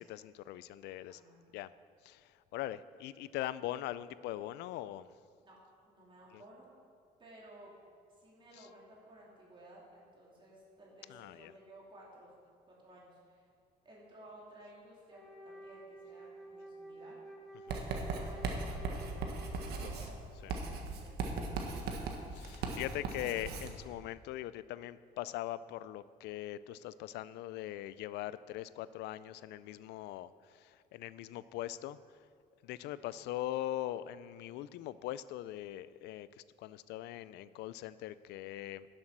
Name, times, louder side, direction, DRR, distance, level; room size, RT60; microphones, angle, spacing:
voice 1, 0.0-1.2 1.5-1.7 2.0-5.1 6.3-6.4 8.6-8.7 11.1-11.5 17.7-17.8 19.8-20.0 20.4-20.5 22.3-32.0 32.6-38.9, left 14 dB, 80° left, 16 dB, 0.4 m, -41 dB
voice 2, 1.1-1.4 5.4-5.6 5.8-6.7 7.2-7.7 8.1-12.3 12.6-13.5 13.8-17.2 17.7-21.9, right 1 dB, 30° right, -5 dB, 3.0 m, -56 dB
Wind instrument woodwind instrument, 15.1-20.2, right 1 dB, ahead, 2.0 m, -51 dB
Writing, 17.7-23.8, right 3 dB, 75° right, 1.4 m, -38 dB
11.0 x 7.5 x 6.0 m, 2.1 s
cardioid pair, 110°, 17 cm